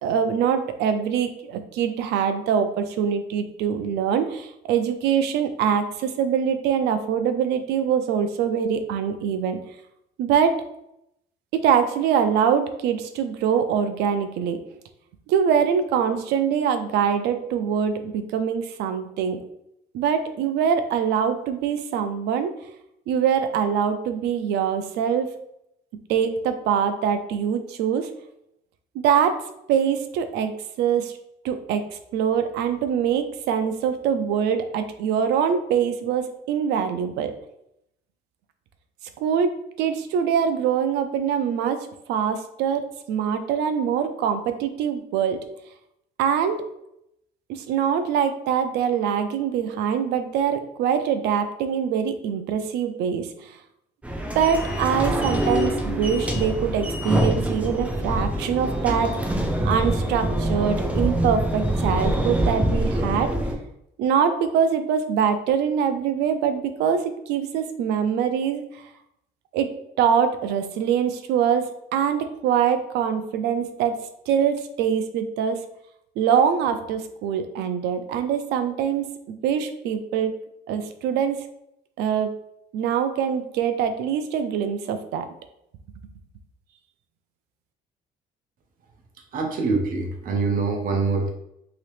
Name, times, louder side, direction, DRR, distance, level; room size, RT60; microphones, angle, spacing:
voice 1, 0.0-9.6 10.2-10.6 11.5-14.6 15.3-19.4 19.9-22.5 23.1-25.3 26.1-28.1 28.9-29.4 29.7-31.2 31.4-37.3 39.2-39.5 39.8-41.8 42.1-45.4 46.2-46.6 47.5-53.6 54.4-59.1 59.6-63.3 64.0-68.6 69.5-69.7 70.0-74.0 74.3-75.6 76.2-79.0 79.4-80.3 80.7-81.4 82.0-82.3 82.7-85.3, right 7 dB, 85° right, 9 dB, 0.4 m, -23 dB
sound 1, 54.0-63.5, right 1 dB, 10° right, 0.6 m, -25 dB
voice 2, 89.3-91.3, right 4 dB, 55° right, 3 dB, 0.8 m, -24 dB
2.9 x 2.8 x 3.2 m, 0.79 s
cardioid pair, 110°, 17 cm